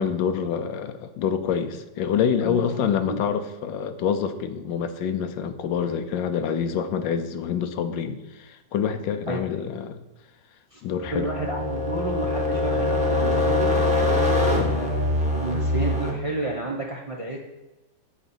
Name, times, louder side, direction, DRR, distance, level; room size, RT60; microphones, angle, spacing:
voice 1, 0.0-10.0 10.8-11.3, left 7 dB, 80° left, 9 dB, 1.4 m, -26 dB
voice 2, 2.4-3.2 9.3-9.4 10.7-10.8 11.1-13.7 14.4-17.4, right 2 dB, 45° right, -2 dB, 0.4 m, -31 dB
sound 1, 11.0-16.1, left 2 dB, 5° right, 1.1 m, -23 dB
9.0 x 4.1 x 7.2 m, 1.0 s
omnidirectional pair, 2.0 m